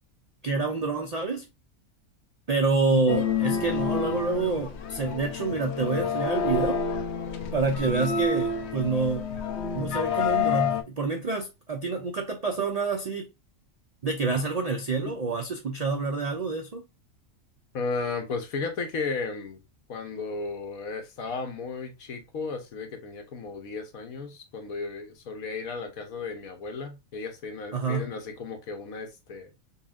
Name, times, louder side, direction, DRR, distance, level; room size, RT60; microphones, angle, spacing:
voice 1, 0.4-1.5 2.5-6.8 7.5-9.3 9.7-13.3 14.0-16.8 27.7-28.1, right 3 dB, 70° right, 0.3 m, -27 dB
voice 2, 2.7-3.0 17.7-19.6 19.9-29.5, left 4 dB, 80° left, 1.4 m, -34 dB
sound 1, 3.1-10.8, left 5 dB, 60° left, 0.8 m, -28 dB
5.4 x 2.4 x 2.4 m
omnidirectional pair, 1.4 m